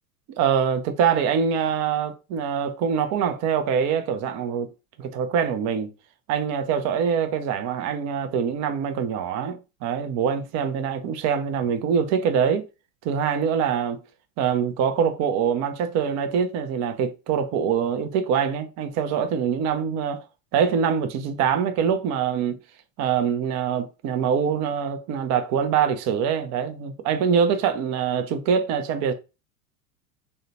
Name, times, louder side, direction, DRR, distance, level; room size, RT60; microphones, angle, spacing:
voice 1, 0.4-4.7 5.0-5.9 6.3-12.6 13.0-14.0 14.4-20.2 20.5-22.6 23.0-29.1, right 7 dB, 35° right, 0.5 m, -24 dB
3.7 x 2.1 x 2.7 m
hypercardioid pair, 85°, 47 cm